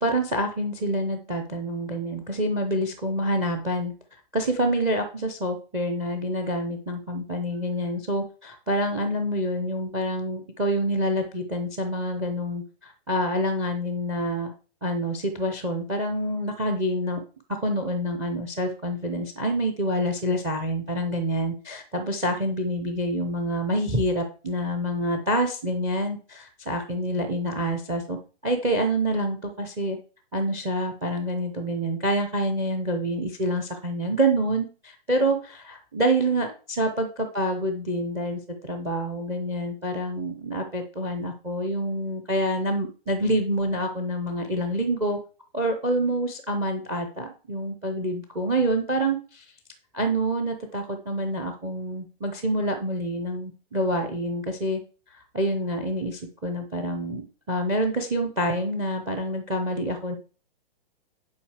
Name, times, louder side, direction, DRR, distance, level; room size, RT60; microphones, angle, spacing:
voice 1, 0.0-3.9 4.3-14.5 14.8-17.2 17.6-28.2 28.4-30.0 30.3-45.2 45.5-49.4 49.9-54.8 55.1-57.2 57.5-60.2, right 1 dB, 10° right, 6 dB, 0.6 m, -27 dB
10.5 x 5.0 x 4.8 m, 0.36 s
hypercardioid pair, 170°, 30 cm